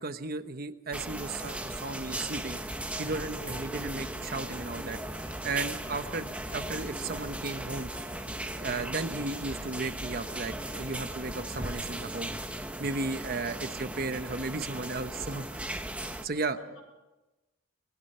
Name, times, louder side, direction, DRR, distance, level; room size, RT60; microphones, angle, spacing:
voice 1, 0.0-2.6 3.0-5.0 5.4-7.9 8.6-12.3 12.8-15.7 16.2-16.6, right 3 dB, 45° right, 9 dB, 1.0 m, -35 dB
sound 1, 0.9-16.3, right 1 dB, 5° right, 1.1 m, -37 dB
sound 2, 2.1-12.4, equal, 20° left, 4.5 m, -48 dB
voice 2, 3.4-3.7 5.5-5.9 13.2-13.5 16.2-16.8, equal, 80° left, 2 dB, 7.2 m, -50 dB
25.0 x 21.0 x 5.6 m, 1.1 s
head